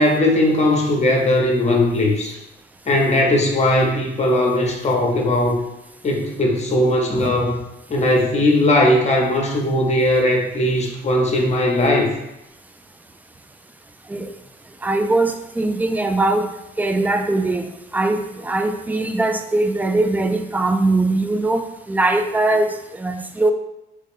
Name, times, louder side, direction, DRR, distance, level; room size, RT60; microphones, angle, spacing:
voice 1, 0.0-2.4 2.9-5.6 6.0-7.6 7.9-12.1, left 1 dB, 35° left, 1 dB, 0.8 m, -18 dB
voice 2, 14.8-16.5 16.8-23.5, right 2 dB, 10° right, 7 dB, 0.3 m, -21 dB
3.2 x 2.3 x 3.5 m, 0.90 s
cardioid pair, 90°, 20 cm